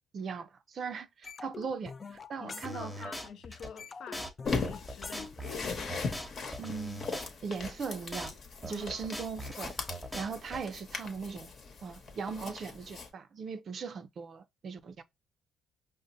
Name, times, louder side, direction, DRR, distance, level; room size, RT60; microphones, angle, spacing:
voice 1, 0.1-1.9 2.3-3.1 6.6-7.0 7.4-8.3 8.6-9.7 10.1-11.5 11.8-15.0, right 5 dB, 55° right, 0.4 m, -39 dB
sound 1, 1.2-3.2 3.4-6.2, left 5 dB, 35° left, 0.4 m, -46 dB
voice 2, 2.4-5.5 8.7-9.1, left 7 dB, 75° left, 0.6 m, -48 dB
sound 2, 2.6-3.7 4.1-4.3 4.6-7.7 8.1-8.3 8.6-10.6, equal, ahead, 0.8 m, -41 dB
sound 3, 4.4-13.1, left 4 dB, 55° left, 1.0 m, -39 dB
5.0 x 2.1 x 2.6 m
cardioid pair, 90°, 0 cm